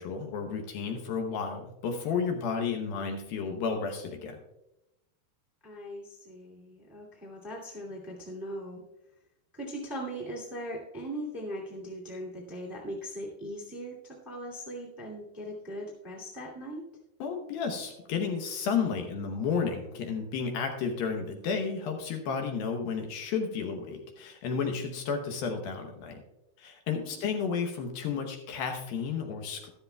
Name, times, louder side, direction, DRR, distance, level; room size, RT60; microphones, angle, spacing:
voice 1, 0.0-4.4 17.2-26.2 26.6-29.7, left 5 dB, 70° left, 4 dB, 2.5 m, -32 dB
voice 2, 5.6-8.9 9.5-16.9 27.1-27.6, equal, 10° right, -4 dB, 1.3 m, -40 dB
13.5 x 12.5 x 2.3 m, 0.90 s
omnidirectional pair, 4.7 m